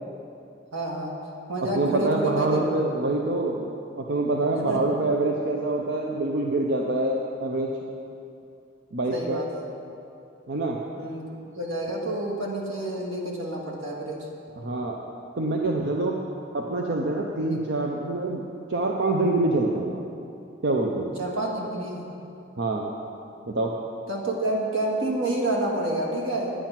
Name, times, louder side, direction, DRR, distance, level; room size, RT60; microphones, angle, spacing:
voice 1, 0.7-1.1 1.5-2.6 4.7-4.8 9.1-9.4 11.0-11.3 11.5-14.3 21.2-22.0 24.1-26.5, right 1 dB, 85° right, -2 dB, 2.1 m, -28 dB
voice 2, 1.7-7.7 8.9-9.4 10.5-10.8 14.6-15.0 15.4-16.2 16.5-18.4 18.7-20.0 20.6-21.1 22.6-22.9 23.5-23.7, right 2 dB, 55° right, 0 dB, 0.7 m, -25 dB
10.0 x 9.1 x 5.9 m, 2.6 s
head